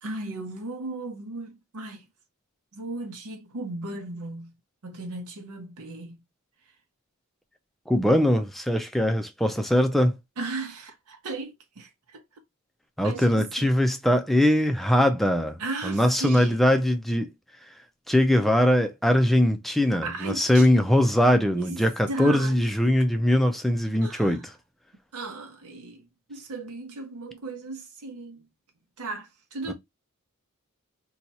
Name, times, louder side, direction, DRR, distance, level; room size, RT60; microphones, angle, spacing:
voice 1, 0.0-2.1 2.7-4.5 4.8-6.2 10.4-12.2 13.0-13.8 15.6-16.6 20.0-20.7 21.5-22.6 24.0-24.4 25.1-28.5 29.0-29.7, right 3 dB, 90° right, 0.8 m, -36 dB
voice 2, 7.9-10.1 13.0-15.6 15.8-17.3 18.1-24.5 29.7-29.8, left 1 dB, ahead, 0.4 m, -21 dB
2.9 x 2.3 x 4.0 m
head